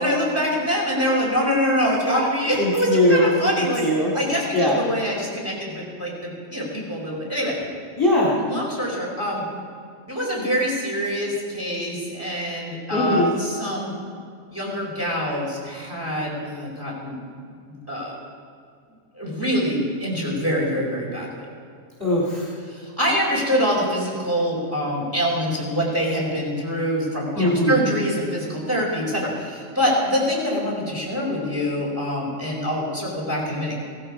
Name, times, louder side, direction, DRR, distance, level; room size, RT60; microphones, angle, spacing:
voice 1, 0.0-3.8 4.1-7.5 8.5-9.4 10.1-13.9 14.5-17.2 17.7-18.2 19.2-21.5 22.7-33.8, equal, 10° right, -4 dB, 4.8 m, -25 dB
voice 2, 2.6-3.3 3.6-4.1 4.5-4.8 8.0-8.3 12.9-13.3 22.0-22.5 27.3-27.8, left 1 dB, 15° left, -6 dB, 3.2 m, -20 dB
17.0 x 15.5 x 5.0 m, 2.2 s
omnidirectional pair, 1.3 m